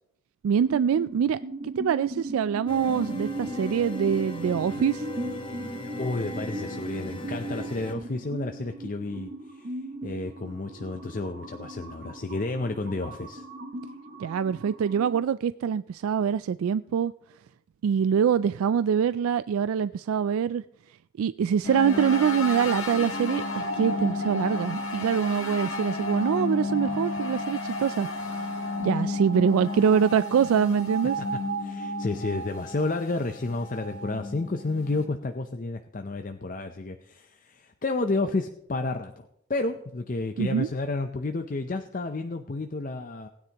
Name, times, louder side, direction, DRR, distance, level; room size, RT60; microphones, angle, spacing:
voice 1, 0.4-5.1 14.2-17.1 17.8-20.6 21.2-28.4 28.8-31.2 40.4-40.7, right 7 dB, 85° right, 15 dB, 0.3 m, -24 dB
sound 1, 0.6-15.2, right 2 dB, 45° right, 1.3 m, -38 dB
sound 2, 2.7-7.9, left 2 dB, 25° left, 1.5 m, -39 dB
voice 2, 6.0-13.4 31.2-43.3, left 2 dB, 40° left, 6 dB, 0.6 m, -31 dB
sound 3, 21.6-35.0, left 2 dB, 85° left, 1.6 m, -32 dB
19.5 x 9.7 x 2.9 m, 0.76 s
head